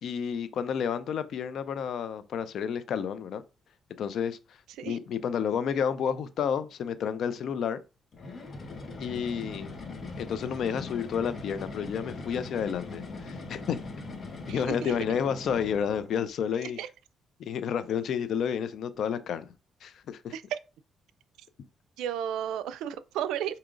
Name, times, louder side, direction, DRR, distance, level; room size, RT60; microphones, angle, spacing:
voice 1, 0.0-3.4 4.0-4.4 4.8-7.8 9.0-9.8 10.2-13.8 14.5-16.8 17.4-19.5 19.8-20.3, left 7 dB, 70° left, 0.4 m, -30 dB
sound 1, 8.1-16.2, left 3 dB, 45° left, 0.9 m, -40 dB
voice 2, 14.5-15.0 16.8-16.9 20.3-20.6 22.0-23.6, right 10 dB, 90° right, 0.3 m, -33 dB
4.9 x 2.8 x 2.5 m
cardioid pair, 90°, 0 cm